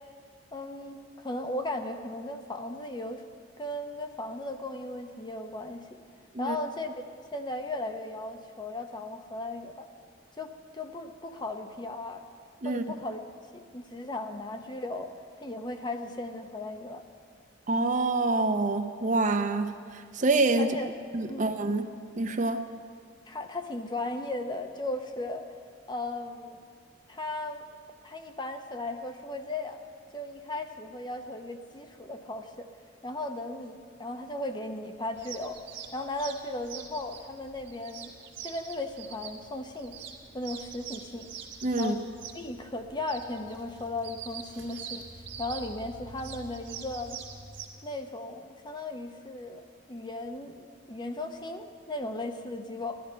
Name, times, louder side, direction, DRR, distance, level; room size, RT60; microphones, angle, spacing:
voice 1, 0.5-3.2 3.6-5.8 6.4-9.9 10.4-12.3 12.6-13.2 13.5-15.2 15.4-17.0 20.6-20.9 21.3-21.5 23.3-25.4 25.9-26.6 27.1-27.6 28.0-29.8 30.1-32.7 33.0-35.6 35.9-38.1 38.4-40.0 40.3-41.3 41.8-42.0 42.3-45.1 45.4-47.2 47.8-53.0, left 2 dB, 25° left, 6 dB, 0.7 m, -36 dB
voice 2, 17.7-19.7 20.1-20.7 21.1-21.9 22.2-22.6 41.6-42.0, right 2 dB, 40° right, 7 dB, 0.7 m, -26 dB
sound 1, 35.1-47.7, right 6 dB, 75° right, 1.7 m, -44 dB
15.5 x 12.0 x 5.7 m, 2.1 s
head